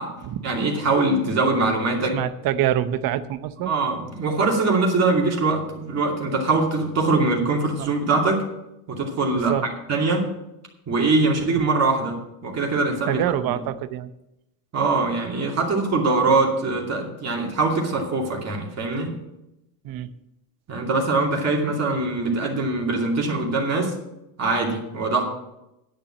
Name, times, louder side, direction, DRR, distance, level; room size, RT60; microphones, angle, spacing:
voice 1, 0.4-2.2 3.7-8.4 8.9-9.5 9.9-10.3 10.9-13.2 13.4-13.5 14.7-19.1 20.7-23.9 24.4-25.2, right 3 dB, 35° right, -1 dB, 2.6 m, -22 dB
voice 2, 2.1-3.7 5.2-5.3 7.8-7.9 9.3-9.7 13.1-14.1 19.8-20.1, right 11 dB, 50° right, 13 dB, 0.8 m, -26 dB
10.5 x 7.4 x 7.1 m, 0.91 s
cardioid pair, 120°, 45 cm